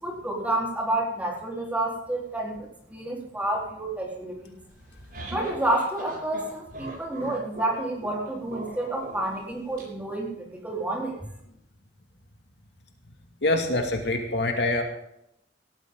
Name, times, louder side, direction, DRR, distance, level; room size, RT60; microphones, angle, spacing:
voice 1, 0.0-4.5 5.3-11.2, right 1 dB, 10° right, -2 dB, 4.0 m, -29 dB
sound 1, 4.7-9.8, right 1 dB, 55° right, 7.6 m, -39 dB
voice 2, 13.4-14.8, left 2 dB, 75° left, 3 dB, 2.4 m, -25 dB
18.0 x 14.0 x 3.9 m, 0.77 s
head